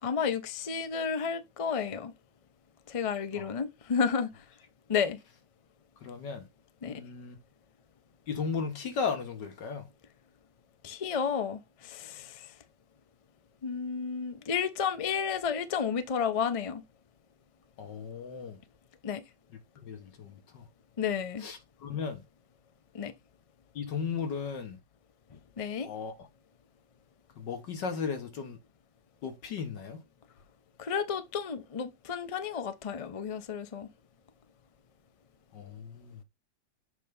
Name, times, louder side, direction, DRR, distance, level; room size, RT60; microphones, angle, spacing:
voice 1, 0.0-2.1 2.9-4.3 4.9-5.2 6.8-7.0 10.8-12.5 13.6-16.8 19.0-19.2 21.0-21.4 22.9-23.1 25.6-25.9 30.8-33.9, left 6 dB, 55° left, 0.4 m, -31 dB
voice 2, 6.0-6.5 6.8-7.4 8.3-9.9 17.8-18.6 19.8-20.6 21.4-22.2 23.8-24.8 25.8-26.3 27.4-28.6 29.2-30.0 35.5-36.2, left 5 dB, 85° left, 2.0 m, -36 dB
7.5 x 3.3 x 5.3 m
omnidirectional pair, 1.8 m